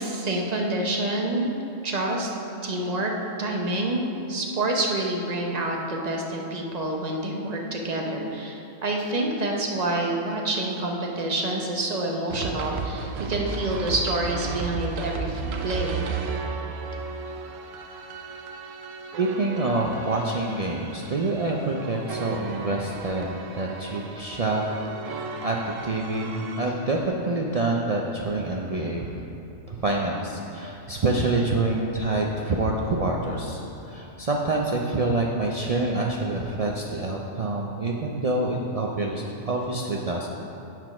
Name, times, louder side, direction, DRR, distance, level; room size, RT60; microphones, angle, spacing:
voice 1, 0.0-1.5 1.8-2.3 2.6-3.1 3.4-16.0, right 2 dB, 35° right, 0 dB, 0.8 m, -27 dB
sound 1, 12.3-26.6, right 4 dB, 85° right, 1.0 m, -34 dB
voice 2, 19.2-24.6 25.1-25.6 25.8-29.1 29.7-40.3, right 2 dB, 65° right, -1 dB, 0.3 m, -27 dB
7.7 x 4.5 x 5.9 m, 2.8 s
omnidirectional pair, 1.3 m